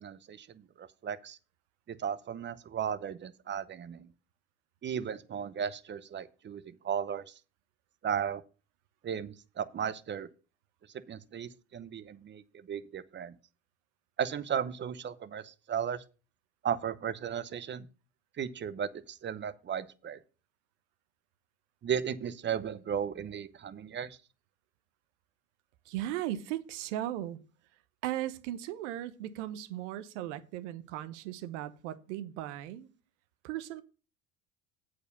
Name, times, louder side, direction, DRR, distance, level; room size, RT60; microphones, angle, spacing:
voice 1, 0.0-1.4 1.9-4.1 4.8-7.3 8.0-8.4 9.0-10.3 11.1-13.3 14.2-16.0 16.6-17.9 18.4-20.2 21.8-24.2, right 8 dB, 30° right, 0.8 m, -35 dB
voice 2, 25.9-27.4 28.0-32.9 33.4-33.8, right 13 dB, 75° right, 0.9 m, -37 dB
8.2 x 4.9 x 6.8 m
hypercardioid pair, 80°, 36 cm